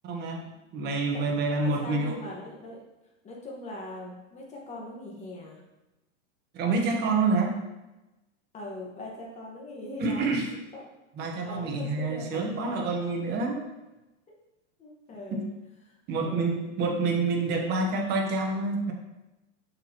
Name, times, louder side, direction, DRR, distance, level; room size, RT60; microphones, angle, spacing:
voice 1, 0.0-2.2 6.5-7.6 10.0-10.5 11.2-13.7 15.3-15.4 16.1-18.9, right 3 dB, 30° right, 1 dB, 1.0 m, -27 dB
voice 2, 1.0-2.8 3.2-5.6 8.5-10.3 10.7-10.8 11.4-12.9 14.8-15.5 15.8-16.0 16.2-16.7, left 1 dB, 20° left, -2 dB, 1.3 m, -41 dB
6.8 x 5.9 x 2.9 m, 1.0 s
supercardioid pair, 150°, 37 cm